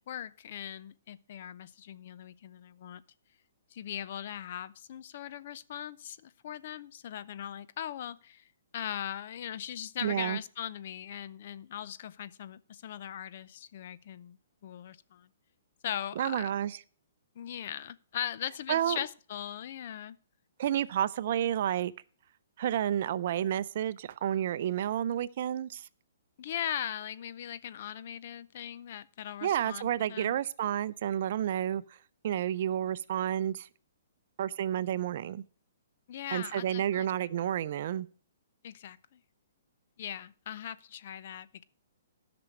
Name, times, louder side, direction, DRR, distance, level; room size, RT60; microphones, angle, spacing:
voice 1, 0.0-3.0 3.7-8.4 8.7-14.4 14.6-15.3 15.8-16.5 17.4-20.2 26.4-30.4 36.1-37.1 38.6-39.2 40.0-41.6, left 10 dB, 50° left, 0.6 m, -39 dB
voice 2, 10.0-10.4 16.2-16.8 18.7-19.0 20.6-21.9 22.6-25.9 29.4-31.8 32.2-33.7 34.4-35.4 36.3-38.1, right 10 dB, 55° right, 0.5 m, -30 dB
12.0 x 6.1 x 6.5 m
hypercardioid pair, 145°, 0 cm